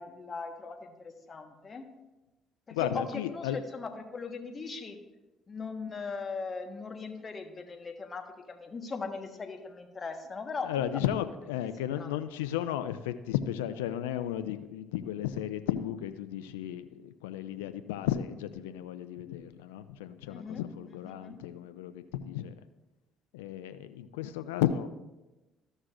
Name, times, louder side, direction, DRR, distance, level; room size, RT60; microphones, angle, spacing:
voice 1, 0.0-1.9 2.7-5.0 5.5-11.0 12.0-12.1 20.3-21.4, left 4 dB, 40° left, 5 dB, 1.3 m, -39 dB
voice 2, 2.7-3.6 10.6-22.5 23.3-24.9, left 11 dB, 85° left, 11 dB, 0.3 m, -34 dB
14.0 x 6.2 x 2.5 m, 1.1 s
hypercardioid pair, 55°, 0 cm